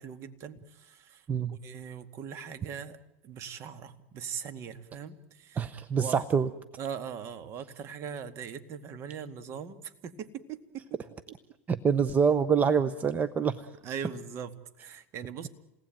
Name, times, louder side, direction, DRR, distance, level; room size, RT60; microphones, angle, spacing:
voice 1, 0.0-1.3 1.6-3.0 3.2-5.7 6.0-6.2 6.8-11.0 13.8-15.5, right 7 dB, 40° right, 10 dB, 2.1 m, -40 dB
voice 2, 1.3-1.6 5.6-6.5 11.7-13.8, right 6 dB, 20° right, 12 dB, 1.0 m, -26 dB
28.0 x 19.0 x 9.2 m, 0.92 s
hypercardioid pair, 115°, 7 cm